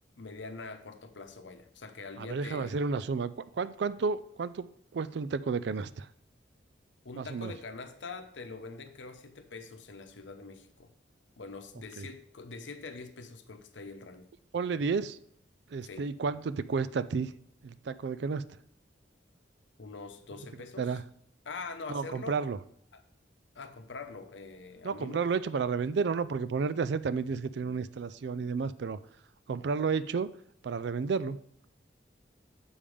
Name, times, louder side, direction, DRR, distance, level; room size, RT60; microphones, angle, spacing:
voice 1, 0.2-2.8 7.0-10.9 11.4-14.3 15.8-16.1 19.8-21.0 21.4-22.4 22.9-23.0 23.5-25.2, left 4 dB, 85° left, 7 dB, 0.8 m, -44 dB
voice 2, 2.2-3.3 3.6-4.7 4.9-6.1 7.2-7.5 12.0-12.1 14.5-15.2 15.7-17.3 17.6-18.4 20.8-21.0 21.9-22.6 24.8-29.0 29.5-30.3 30.6-31.4, right 5 dB, 70° right, 15 dB, 0.4 m, -31 dB
7.1 x 5.3 x 4.9 m, 0.67 s
head